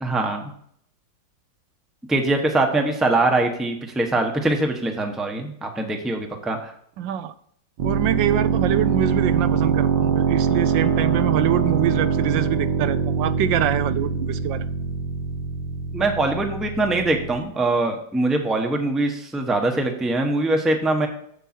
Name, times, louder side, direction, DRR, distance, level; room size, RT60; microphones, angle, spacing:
voice 1, 0.0-0.4 2.1-6.7 15.9-21.1, right 2 dB, ahead, 3 dB, 0.8 m, -22 dB
voice 2, 7.0-7.3 7.8-14.6, right 11 dB, 85° right, 13 dB, 1.3 m, -25 dB
sound 1, 7.8-17.4, right 6 dB, 70° right, 2.0 m, -23 dB
7.9 x 7.7 x 4.4 m, 0.66 s
omnidirectional pair, 2.0 m